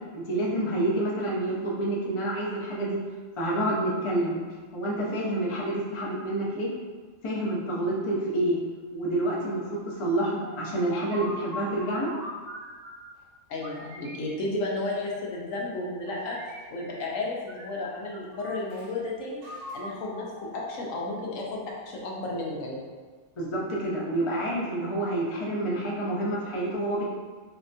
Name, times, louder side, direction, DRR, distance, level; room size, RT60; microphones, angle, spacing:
voice 1, 0.1-3.0 3.4-4.4 4.7-6.7 7.2-8.6 8.9-12.1 23.4-27.0, right 1 dB, 55° left, -5 dB, 0.3 m, -28 dB
sound 1, 10.4-13.2 13.6-15.4 16.1-17.2 17.5-18.9 19.4-21.2, left 1 dB, 65° right, 0.5 m, -42 dB
voice 2, 13.5-16.4 16.7-19.4 19.7-22.8, left 2 dB, 75° left, -2 dB, 1.0 m, -33 dB
3.2 x 2.8 x 2.6 m, 1.5 s
omnidirectional pair, 1.5 m